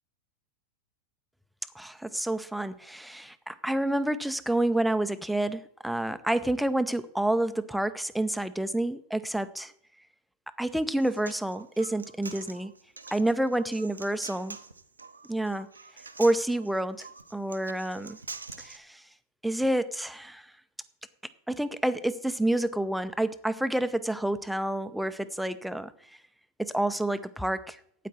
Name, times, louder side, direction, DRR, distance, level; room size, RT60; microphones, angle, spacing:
voice 1, 1.7-9.7 10.6-12.7 13.1-14.6 15.3-15.7 16.2-18.2 18.6-19.0 19.4-20.5 21.5-25.9 26.6-27.8, right 1 dB, ahead, 13 dB, 0.7 m, -29 dB
Human voice, 10.8-18.8, right 4 dB, 80° right, 0.8 m, -45 dB
12.5 x 9.2 x 4.5 m, 0.66 s
figure-of-eight pair, 90°, 0 cm